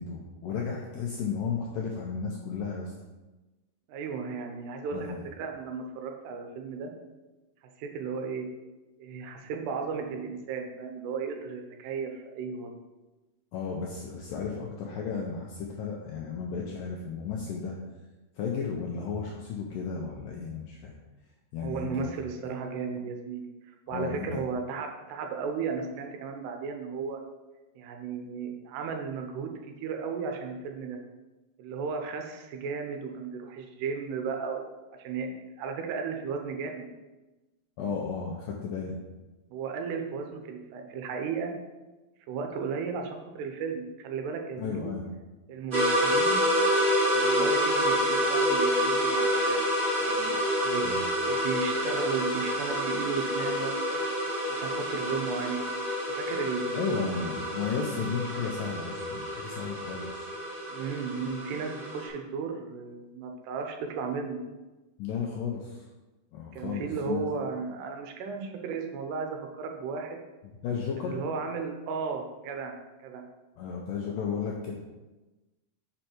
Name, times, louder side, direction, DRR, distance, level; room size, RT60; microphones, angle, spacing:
voice 1, 0.0-2.9 4.9-5.2 13.5-17.8 18.4-20.9 21.5-22.1 23.9-24.4 37.8-39.0 44.6-45.0 50.8-51.0 56.7-60.3 65.0-65.8 66.3-67.3 70.6-71.2 73.6-74.7, left 5 dB, 80° left, -1 dB, 1.9 m, -34 dB
voice 2, 3.9-6.9 7.8-8.5 9.0-12.7 21.6-23.5 23.9-27.2 27.8-29.5 29.8-31.0 31.6-34.7 35.0-36.9 39.5-41.5 42.3-44.9 45.5-46.4 47.1-49.6 50.0-50.4 50.6-50.9 51.3-54.0 54.5-55.7 56.2-56.9 60.7-64.4 66.5-70.2 71.0-73.3, right 5 dB, 85° right, 3 dB, 2.9 m, -35 dB
sound 1, 45.7-62.1, equal, 35° right, 1.6 m, -28 dB
6.5 x 5.5 x 4.4 m, 1.1 s
omnidirectional pair, 4.7 m